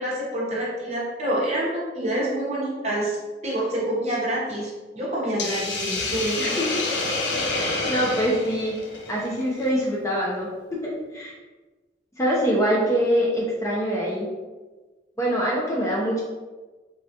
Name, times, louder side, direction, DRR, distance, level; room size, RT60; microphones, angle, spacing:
voice 1, 0.0-3.2 3.4-6.6, right 1 dB, 35° right, -5 dB, 0.8 m, -27 dB
Hiss, 5.4-9.7, left 2 dB, 80° left, 0.5 m, -28 dB
voice 2, 6.4-6.8 7.5-8.8 9.1-10.5 10.8-11.3 12.2-14.3 15.2-16.2, equal, 15° left, -5 dB, 0.5 m, -24 dB
3.3 x 2.3 x 2.7 m, 1.2 s
head